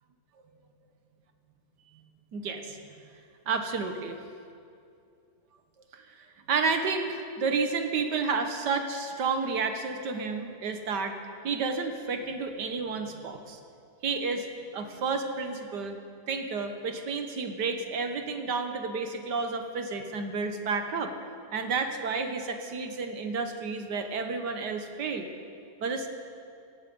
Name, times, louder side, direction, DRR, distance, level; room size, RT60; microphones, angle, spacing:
voice 1, 2.3-2.8 3.5-4.2 5.9-11.2 11.4-13.6 14.0-14.5 14.7-16.0 16.3-21.1 21.5-25.3 25.8-26.1, right 4 dB, 85° right, 6 dB, 1.9 m, -31 dB
18.0 x 14.5 x 5.4 m, 2.4 s
omnidirectional pair, 1.8 m